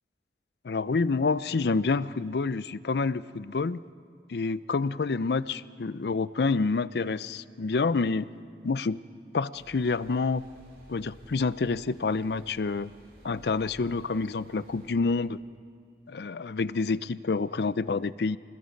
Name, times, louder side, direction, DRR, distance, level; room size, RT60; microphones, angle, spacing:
voice 1, 0.6-3.8 4.3-8.3 8.6-9.0 9.3-10.4 10.9-12.9 13.2-15.4 16.1-18.4, left 4 dB, 70° left, 17 dB, 0.5 m, -28 dB
sound 1, 9.5-14.9, equal, 65° right, 7.1 m, -54 dB
29.5 x 20.5 x 5.3 m, 2.3 s
head